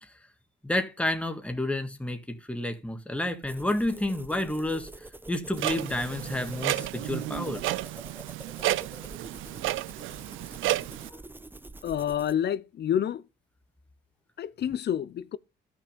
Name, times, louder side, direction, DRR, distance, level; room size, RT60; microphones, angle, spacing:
voice 1, 0.6-7.8 9.5-9.9 11.1-11.2, left 1 dB, 5° left, 1.8 m, -31 dB
sound 1, 3.4-12.4, right 2 dB, 10° right, 0.7 m, -46 dB
Clock, 5.6-11.1, right 16 dB, 90° right, 0.5 m, -32 dB
voice 2, 11.8-13.2 14.4-15.4, left 10 dB, 60° left, 0.8 m, -28 dB
13.0 x 6.1 x 5.3 m
cardioid pair, 90°, 20 cm